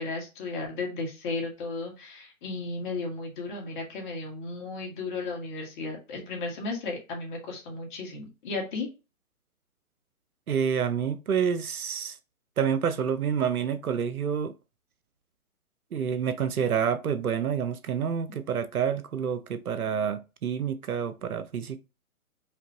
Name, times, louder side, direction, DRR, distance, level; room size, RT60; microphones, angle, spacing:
voice 1, 0.0-8.9, left 3 dB, 35° left, 1.9 m, -34 dB
voice 2, 10.5-12.2 12.6-14.5 15.9-21.8, right 7 dB, 85° right, 0.8 m, -28 dB
5.1 x 2.9 x 2.9 m
hypercardioid pair, 145°, 43 cm